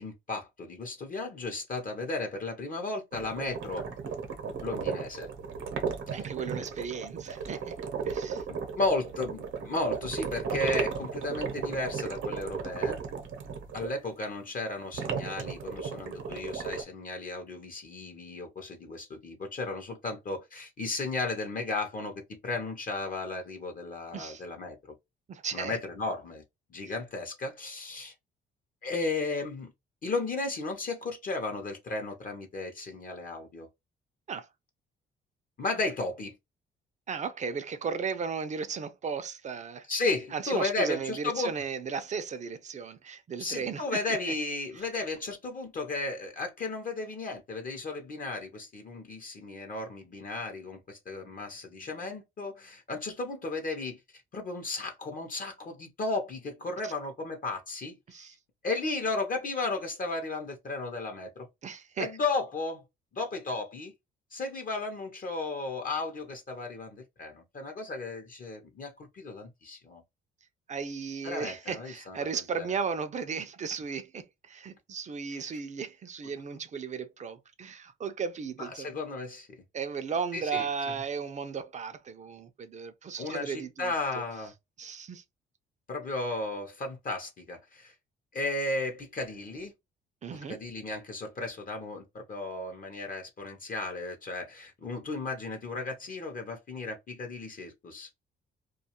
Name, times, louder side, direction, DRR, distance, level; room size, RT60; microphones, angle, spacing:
voice 1, 0.0-3.8 4.6-5.3 6.1-6.2 8.5-13.0 13.7-24.8 25.5-26.4 26.7-28.1 28.8-29.7 30.0-33.7 35.6-36.3 39.9-41.5 43.4-54.0 54.3-58.3 58.6-61.5 62.0-62.8 63.1-63.9 64.3-70.0 71.2-72.2 72.6-72.7 75.3-75.4 78.6-79.6 80.3-80.7 83.2-84.5 85.9-87.9 88.3-89.7 90.5-98.1, left 3 dB, 45° left, 0.6 m, -34 dB
sound 1, 3.1-13.9 14.9-16.8, right 6 dB, 80° right, 0.7 m, -35 dB
voice 2, 6.1-7.8 8.0-8.4 24.1-24.4 25.3-25.8 34.3-34.5 37.1-39.9 40.3-44.0 56.8-56.9 58.1-58.3 61.6-62.1 70.7-78.9 79.7-84.2 84.8-85.2 90.2-90.6, right 6 dB, 35° right, 0.4 m, -35 dB
2.4 x 2.3 x 2.8 m
cardioid pair, 90°, 20 cm